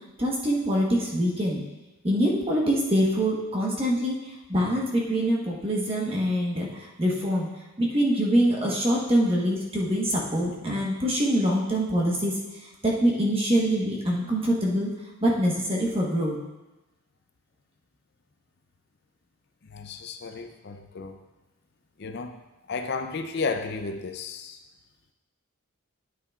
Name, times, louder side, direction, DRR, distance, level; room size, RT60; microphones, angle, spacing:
voice 1, 0.2-1.6 2.0-7.5 7.8-12.4 12.8-14.9 15.2-16.4, equal, 25° right, -3 dB, 1.2 m, -24 dB
voice 2, 19.6-21.3 22.0-22.4 22.7-24.6, left 4 dB, 50° left, 7 dB, 0.5 m, -33 dB
9.5 x 8.4 x 2.4 m, 1.0 s
head